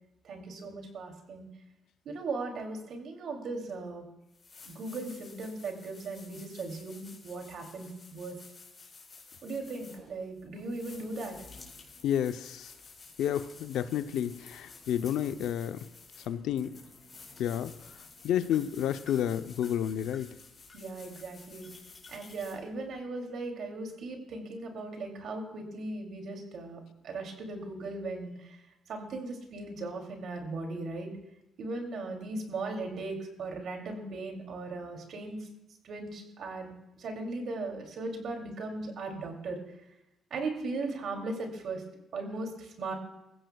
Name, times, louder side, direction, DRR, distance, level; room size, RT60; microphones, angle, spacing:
voice 1, 0.2-1.5 2.0-4.0 4.6-8.4 9.4-11.4 20.7-21.7 22.1-28.6 28.9-31.1 31.6-35.4 35.8-36.7 37.0-39.6 40.3-41.8 42.1-42.9, right 3 dB, 65° right, 2 dB, 2.8 m, -38 dB
sound 1, 3.8-3.9 4.3-23.0, left 4 dB, 35° left, 4.0 m, -52 dB
voice 2, 12.0-12.7 13.2-15.8 16.3-16.8 17.4-17.7 18.2-20.3, left 10 dB, 85° left, 11 dB, 0.6 m, -30 dB
21.0 x 15.0 x 2.3 m, 0.91 s
cardioid pair, 90°, 0 cm